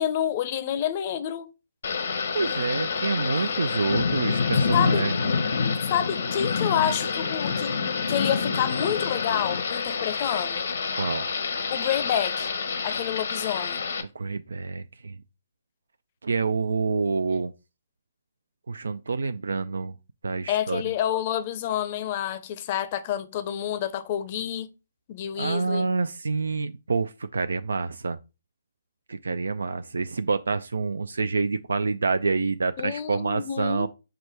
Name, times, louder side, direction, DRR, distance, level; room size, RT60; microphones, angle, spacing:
voice 1, 0.0-1.5 4.7-5.1 5.9-7.8 8.1-10.6 11.7-12.5 12.8-13.8 20.5-24.7 25.1-25.9 32.8-33.9, left 10 dB, 40° left, 0.6 m, -28 dB
Thunder / Rain, 1.8-14.0, left 5 dB, 65° left, 0.8 m, -27 dB
voice 2, 2.3-5.1 11.0-11.2 14.2-15.2 16.2-17.5 18.7-19.9 20.2-20.8 25.4-28.2 29.1-33.9, right 4 dB, 80° right, 0.3 m, -27 dB
5.0 x 2.2 x 4.5 m
figure-of-eight pair, 140°, 0 cm